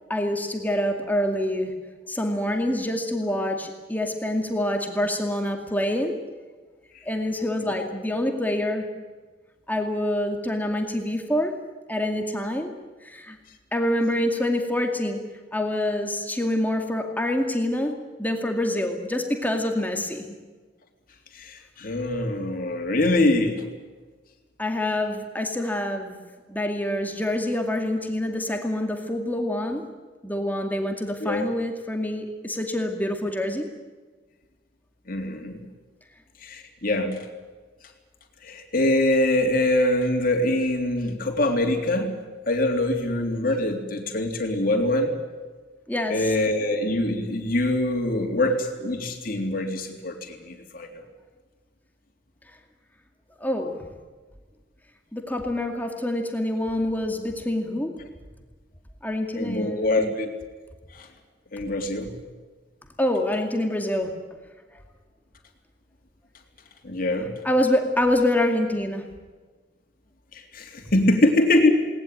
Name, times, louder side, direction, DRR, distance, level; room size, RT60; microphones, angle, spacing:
voice 1, 0.1-1.7 2.1-6.2 7.1-8.9 9.7-11.6 11.9-12.7 13.0-13.4 13.7-15.2 15.5-20.3 24.6-26.2 26.5-29.9 30.2-33.7 45.9-46.3 53.4-53.9 55.1-58.0 59.0-60.1 63.0-64.1 67.4-69.1, left 1 dB, 10° left, 3 dB, 2.3 m, -26 dB
voice 2, 21.3-23.6 31.2-31.5 35.1-35.6 36.4-37.3 38.4-45.1 46.1-50.9 59.4-60.3 60.9-61.1 61.5-62.1 66.8-67.4 70.3-71.7, left 1 dB, 45° left, 3 dB, 3.5 m, -24 dB
20.0 x 19.0 x 9.4 m, 1.4 s
head